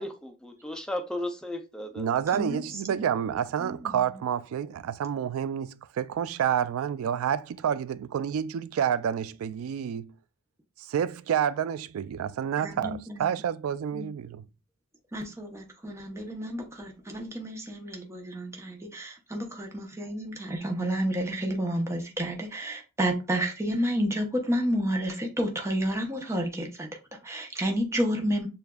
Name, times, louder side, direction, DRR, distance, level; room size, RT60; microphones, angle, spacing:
voice 1, 0.0-2.1, left 1 dB, 5° left, 0.5 m, -35 dB
voice 2, 2.0-10.1 10.8-14.4, right 8 dB, 80° right, 0.3 m, -29 dB
voice 3, 2.9-3.3 3.6-4.0 12.6-13.3 13.9-14.1 15.1-28.5, equal, 15° right, 0.8 m, -30 dB
6.8 x 2.5 x 2.3 m
head